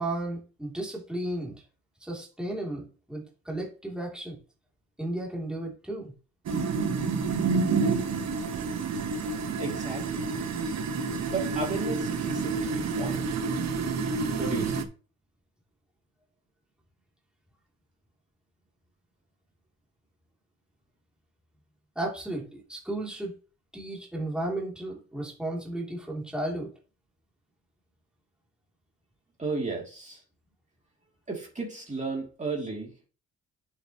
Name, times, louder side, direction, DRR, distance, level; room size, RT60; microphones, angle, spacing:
voice 1, 0.0-1.6 2.0-4.4 5.0-6.1 21.9-23.3 23.7-26.7, right 1 dB, 5° right, -2 dB, 2.9 m, -34 dB
sound 1, 6.5-14.8, right 4 dB, 65° right, 1.3 m, -29 dB
voice 2, 9.6-10.3 11.3-13.4 14.4-14.7 29.4-30.2 31.3-32.9, right 4 dB, 25° right, -1 dB, 2.8 m, -34 dB
8.7 x 7.4 x 3.0 m, 0.35 s
cardioid pair, 90°, 30 cm